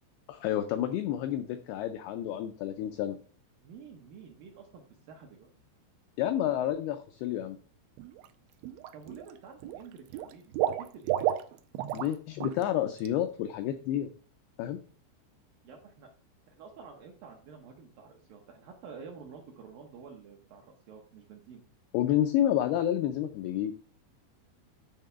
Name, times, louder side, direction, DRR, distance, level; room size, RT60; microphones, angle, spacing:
voice 1, 0.3-3.2 6.2-7.6 11.9-14.1 14.6-14.8 21.9-23.7, left 11 dB, 90° left, 8 dB, 2.2 m, -29 dB
voice 2, 3.6-5.5 8.9-11.3 15.6-16.1 16.5-21.7, right 6 dB, 75° right, 2 dB, 2.1 m, -49 dB
Water / Liquid, 8.0-8.3 8.6-9.3 9.6-12.1 12.4-12.6 13.0-13.1, right 13 dB, 90° right, 3.0 m, -32 dB
10.0 x 3.6 x 6.8 m, 0.42 s
omnidirectional pair, 5.2 m